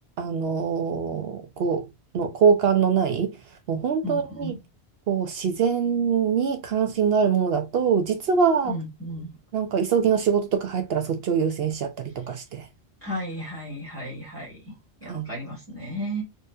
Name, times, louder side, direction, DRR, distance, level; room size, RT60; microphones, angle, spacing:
voice 1, 0.2-1.9 2.1-3.4 3.7-4.5 5.1-8.7 9.5-12.7 15.1-15.3, right 6 dB, 70° right, 0.8 m, -23 dB
voice 2, 4.0-4.6 8.6-9.4 13.0-14.7 15.0-16.2, equal, 10° left, 1.8 m, -34 dB
4.4 x 3.1 x 2.4 m
omnidirectional pair, 1.1 m